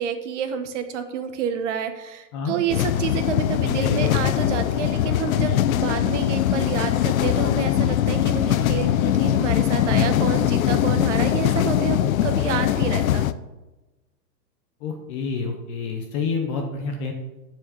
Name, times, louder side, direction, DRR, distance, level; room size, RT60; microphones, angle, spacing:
voice 1, 0.0-5.5 5.8-13.2, right 8 dB, 45° right, 8 dB, 1.2 m, -29 dB
sound 1, 2.7-13.3, left 11 dB, 55° left, 0.6 m, -21 dB
voice 2, 3.6-4.2 9.8-10.1 14.8-17.1, left 5 dB, 20° left, 3 dB, 0.7 m, -28 dB
10.5 x 4.9 x 6.9 m, 1.1 s
hypercardioid pair, 155°, 50 cm